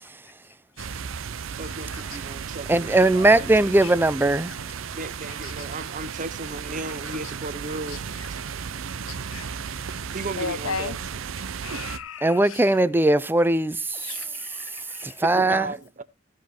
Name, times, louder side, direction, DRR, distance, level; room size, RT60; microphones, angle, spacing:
sound 1, 0.8-12.0, right 6 dB, 70° right, 0.6 m, -34 dB
voice 1, 1.5-3.5 4.9-8.4 10.1-11.2 15.2-16.0, right 3 dB, 40° right, 0.9 m, -35 dB
voice 2, 2.7-4.5 12.2-13.8 15.0-15.7, right 2 dB, 10° right, 0.4 m, -19 dB
voice 3, 9.1-9.5 10.4-11.0 11.6-12.7 13.9-15.0, left 5 dB, 70° left, 0.7 m, -35 dB
15.0 x 5.2 x 4.4 m
head